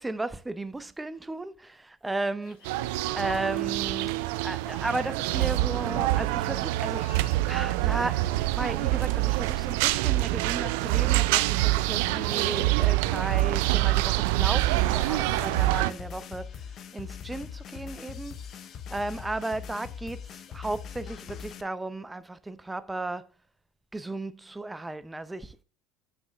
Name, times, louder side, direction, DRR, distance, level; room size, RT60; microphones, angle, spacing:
voice 1, 0.0-7.2 7.5-16.6 16.9-18.4 18.9-23.3 23.9-25.6, right 2 dB, 10° right, 0.7 m, -35 dB
sound 1, 2.4-11.0, left 4 dB, 75° left, 3.9 m, -57 dB
sound 2, 2.7-15.9, right 18 dB, 70° right, 0.4 m, -26 dB
sound 3, 14.6-21.6, left 7 dB, 50° left, 0.7 m, -41 dB
8.5 x 5.3 x 3.5 m
hypercardioid pair, 70°, 0 cm